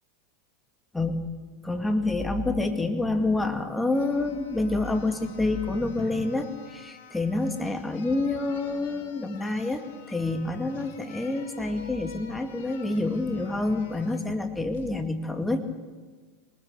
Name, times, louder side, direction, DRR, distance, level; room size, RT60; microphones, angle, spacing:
voice 1, 1.6-15.6, left 2 dB, 10° left, 6 dB, 2.2 m, -28 dB
sound 1, 3.4-3.5 3.9-14.3 14.7-14.9, left 7 dB, 75° left, 3.9 m, -49 dB
23.5 x 19.5 x 6.8 m, 1.4 s
hypercardioid pair, 110°, 0 cm